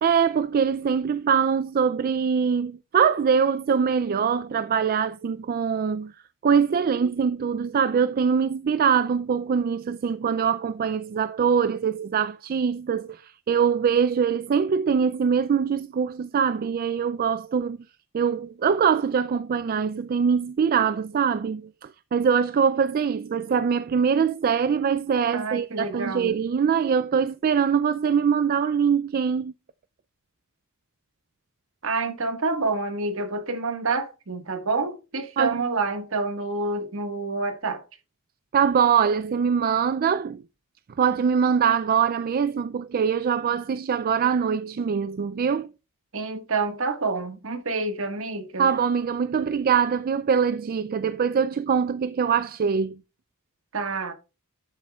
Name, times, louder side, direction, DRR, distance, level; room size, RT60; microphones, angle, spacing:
voice 1, 0.0-6.1 6.4-17.8 18.1-29.5 35.4-35.6 38.5-40.4 41.0-45.7 48.6-53.0, right 6 dB, 45° right, 0.3 m, -23 dB
voice 2, 25.3-26.3 31.8-37.8 46.1-48.7 53.7-54.1, right 3 dB, 65° right, 1.5 m, -28 dB
12.0 x 7.3 x 2.3 m
head